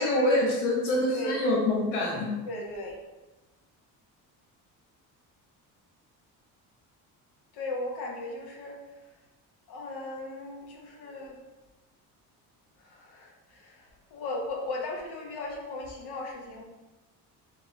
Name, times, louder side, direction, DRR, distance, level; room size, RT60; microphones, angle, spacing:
voice 1, 0.0-2.3, left 1 dB, 90° left, -2 dB, 0.9 m, -25 dB
voice 2, 2.5-3.0 7.5-9.1 9.7-11.4 12.8-16.6, left 2 dB, 60° left, 0 dB, 1.0 m, -37 dB
4.0 x 2.8 x 3.6 m, 1.1 s
supercardioid pair, 70°, 44 cm